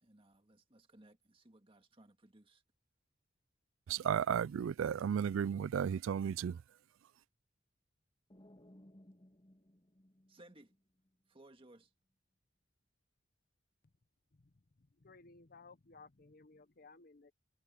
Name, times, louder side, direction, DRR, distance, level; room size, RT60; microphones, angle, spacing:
voice 1, 0.0-2.6 10.3-10.7 11.3-11.9, right 1 dB, 25° right, 1.9 m, -61 dB
voice 2, 3.9-6.6, right 8 dB, 80° right, 0.3 m, -34 dB
sound 1, 8.3-11.1, left 1 dB, 25° left, 2.4 m, -61 dB
voice 3, 15.0-17.3, left 3 dB, 45° left, 0.8 m, -58 dB
head